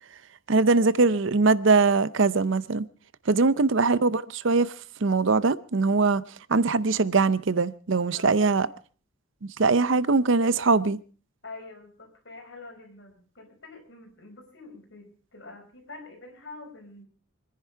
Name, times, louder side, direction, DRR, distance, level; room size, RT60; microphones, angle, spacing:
voice 1, 0.5-2.9 3.3-4.7 5.0-6.2 6.5-8.7 9.4-11.0, right 3 dB, 60° right, 0.6 m, -22 dB
voice 2, 3.3-3.6 8.1-8.7 11.4-17.1, left 3 dB, 60° left, 5.1 m, -46 dB
26.0 x 10.5 x 4.6 m
head